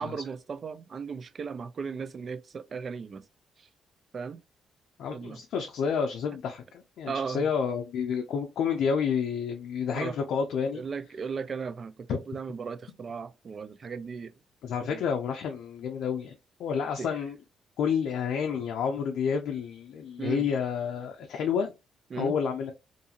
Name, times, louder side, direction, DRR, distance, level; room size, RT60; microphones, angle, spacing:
voice 1, 0.0-3.2 3.6-3.7 4.1-4.4 5.1-5.4 7.1-7.5 9.9-10.2 10.7-14.3 14.8-15.0 17.0-17.1 20.2-20.5 22.1-22.4, right 5 dB, 45° right, 0.3 m, -36 dB
voice 2, 5.0-6.6 7.0-10.8 14.6-16.3 16.6-17.4 17.8-21.7 22.2-22.7, left 6 dB, 75° left, 0.4 m, -29 dB
2.6 x 2.4 x 2.7 m
cardioid pair, 90°, 0 cm